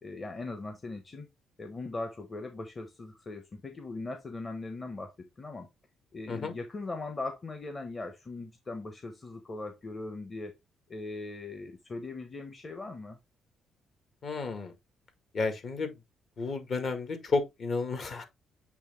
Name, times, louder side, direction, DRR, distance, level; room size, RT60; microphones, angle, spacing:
voice 1, 0.0-1.3 1.6-5.7 6.1-10.6 10.9-13.2, left 2 dB, 30° left, 1.1 m, -40 dB
voice 2, 14.2-14.7 15.3-15.9 16.4-18.3, left 4 dB, 50° left, 1.9 m, -32 dB
8.1 x 3.2 x 3.6 m
cardioid pair, 90°, 0 cm